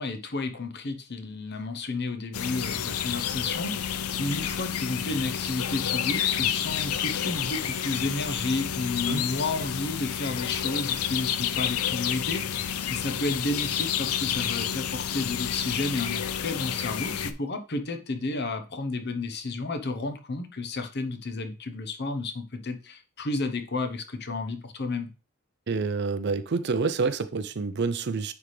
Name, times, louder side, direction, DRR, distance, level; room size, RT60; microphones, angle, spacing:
voice 1, 0.0-25.1, left 3 dB, 50° left, 0.9 m, -32 dB
sound 1, 2.3-17.3, left 9 dB, 85° left, 0.5 m, -30 dB
voice 2, 25.7-28.3, right 4 dB, 50° right, 0.5 m, -28 dB
9.6 x 3.5 x 3.2 m
head